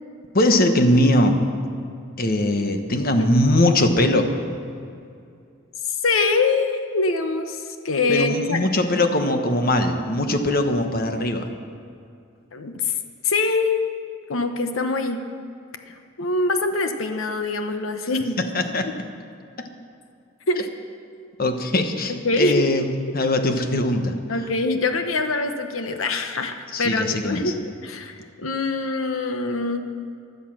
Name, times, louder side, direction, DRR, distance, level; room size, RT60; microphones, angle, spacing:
voice 1, 0.3-1.4 2.2-4.3 8.1-11.5 18.5-18.9 21.4-24.2 26.7-27.5, left 1 dB, 45° left, 6 dB, 1.2 m, -21 dB
voice 2, 6.0-8.6 12.5-12.9 13.2-13.8 14.3-15.2 16.2-18.5 18.8-18.9 20.5-20.7 22.1-22.9 24.3-29.8, left 3 dB, 85° left, 7 dB, 1.0 m, -24 dB
16.5 x 11.0 x 6.2 m, 2.4 s
head